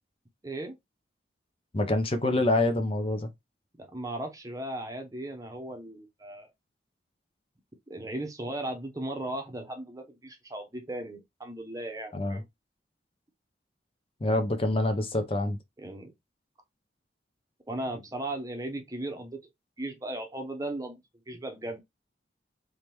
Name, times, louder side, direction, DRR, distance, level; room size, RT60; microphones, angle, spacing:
voice 1, 0.4-0.8 3.8-6.5 7.9-12.4 15.8-16.1 17.7-19.4 19.8-21.0 21.3-21.8, right 1 dB, 20° right, 0.8 m, -36 dB
voice 2, 1.7-3.3 12.1-12.4 14.2-15.6, left 2 dB, 30° left, 0.6 m, -26 dB
3.6 x 3.2 x 3.0 m
head